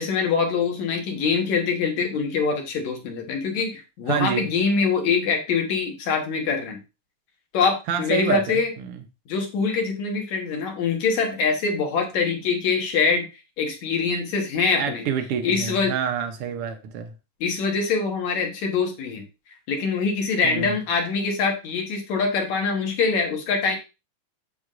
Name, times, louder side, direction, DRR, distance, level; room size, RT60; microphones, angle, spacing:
voice 1, 0.0-6.8 7.5-8.7 9.3-13.3 13.6-15.0 15.4-15.9 17.4-19.2 19.7-23.8, left 5 dB, 65° left, 2 dB, 2.6 m, -24 dB
voice 2, 4.1-4.5 7.9-9.0 14.8-17.1 20.4-20.8, right 7 dB, 75° right, 6 dB, 1.3 m, -27 dB
7.9 x 7.2 x 2.5 m, 0.28 s
omnidirectional pair, 3.6 m